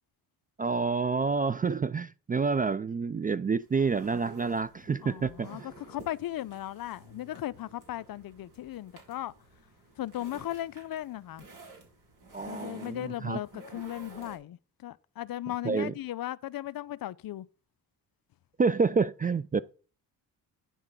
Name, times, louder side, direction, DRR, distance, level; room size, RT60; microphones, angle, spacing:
voice 1, 0.6-5.7 12.3-13.4 15.6-15.9 18.6-19.6, right 4 dB, 20° right, 0.3 m, -28 dB
sound 1, 3.6-14.4, right 3 dB, 45° right, 3.8 m, -51 dB
voice 2, 5.0-9.3 10.0-11.5 12.4-17.5, left 13 dB, 55° left, 0.6 m, -37 dB
9.9 x 3.6 x 6.7 m
supercardioid pair, 65°, 43 cm